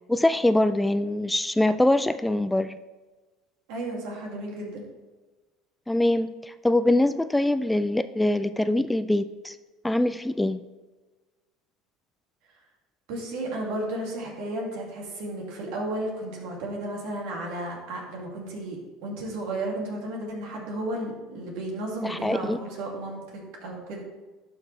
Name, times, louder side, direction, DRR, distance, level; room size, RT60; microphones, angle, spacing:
voice 1, 0.1-2.8 5.9-9.5 9.8-10.6 22.0-22.6, left 1 dB, 5° left, 12 dB, 0.3 m, -23 dB
voice 2, 3.7-4.8 13.1-24.0, right 1 dB, 75° right, -1 dB, 2.3 m, -33 dB
12.0 x 4.8 x 3.2 m, 1.2 s
supercardioid pair, 85°, 0 cm